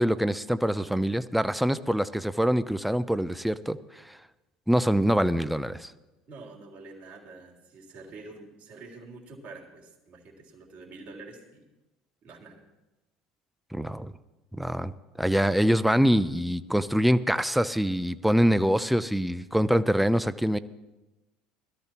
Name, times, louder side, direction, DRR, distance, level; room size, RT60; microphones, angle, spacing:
voice 1, 0.0-3.8 4.7-5.9 13.7-14.1 14.5-14.9 15.2-20.6, equal, ahead, 14 dB, 0.6 m, -24 dB
voice 2, 6.3-11.6 12.2-12.6, right 3 dB, 50° right, -1 dB, 3.4 m, -47 dB
21.5 x 13.5 x 3.0 m, 1.1 s
hypercardioid pair, 85°, 3 cm